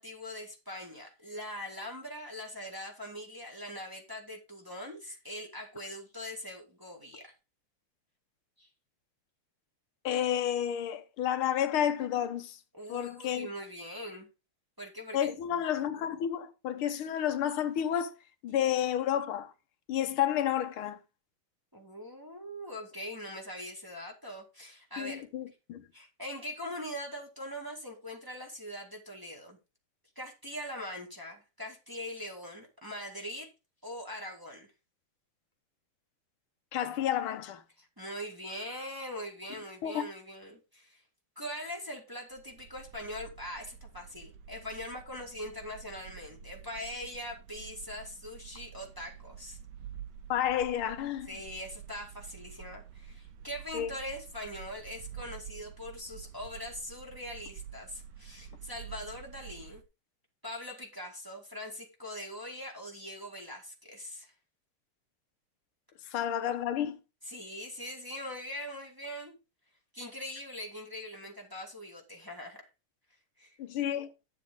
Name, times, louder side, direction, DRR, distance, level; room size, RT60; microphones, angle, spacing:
voice 1, 0.0-7.3 8.6-8.7 12.7-14.3 14.8-15.3 21.7-25.3 25.9-29.6 30.2-33.5 33.8-34.7 37.8-41.0 41.4-49.6 51.3-59.8 60.4-64.3 67.2-69.4 69.9-72.6 73.4-73.6, left 1 dB, 10° right, 1.9 m, -42 dB
voice 2, 10.0-12.6 12.9-13.5 15.1-18.1 18.4-19.5 19.9-21.0 25.0-25.8 36.7-37.6 39.8-40.1 50.3-51.3 53.7-53.9 66.1-67.0 73.6-74.1, left 10 dB, 85° left, 1.8 m, -30 dB
sound 1, 42.3-59.8, right 9 dB, 65° right, 1.3 m, -48 dB
10.5 x 7.3 x 3.7 m
omnidirectional pair, 2.3 m